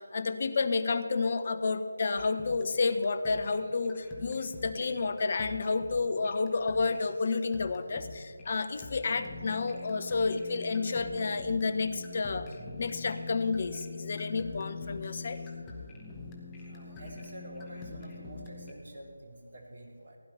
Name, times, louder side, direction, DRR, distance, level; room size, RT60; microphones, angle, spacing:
voice 1, 0.0-12.5 12.8-15.4, left 4 dB, 40° left, 11 dB, 0.8 m, -30 dB
sound 1, 2.2-18.7, left 3 dB, 15° left, 1.3 m, -44 dB
voice 2, 16.7-20.2, right 1 dB, 50° right, 1 dB, 2.4 m, -48 dB
15.5 x 10.5 x 5.6 m, 2.1 s
figure-of-eight pair, 160°, 0 cm